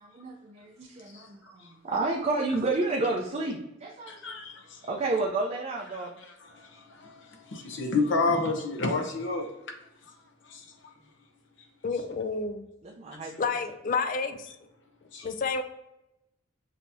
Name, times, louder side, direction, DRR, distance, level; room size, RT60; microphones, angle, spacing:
voice 1, 0.0-4.3 4.8-6.2 12.8-13.3, right 3 dB, 30° right, -1 dB, 0.5 m, -30 dB
voice 2, 4.1-4.8 5.9-9.5 10.5-10.6 15.1-15.3, left 3 dB, 60° left, 3 dB, 0.8 m, -30 dB
voice 3, 11.8-12.7 13.4-14.5 15.2-15.6, left 4 dB, 40° left, 8 dB, 0.4 m, -29 dB
6.3 x 2.8 x 2.6 m, 0.89 s
head